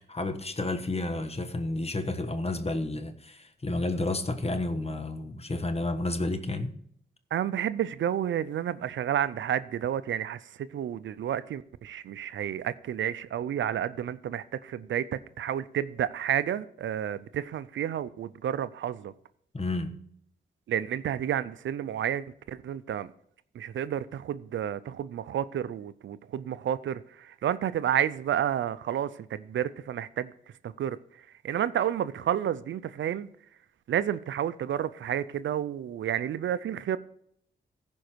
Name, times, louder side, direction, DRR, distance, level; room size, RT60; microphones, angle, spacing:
voice 1, 0.1-6.7 19.5-20.0, left 2 dB, 30° left, 1.3 m, -31 dB
voice 2, 7.3-19.1 20.7-23.1 23.5-30.3 30.6-31.0 31.4-33.3 33.9-37.0, right 10 dB, 75° right, 0.5 m, -30 dB
15.0 x 5.2 x 4.5 m
cardioid pair, 50°, 20 cm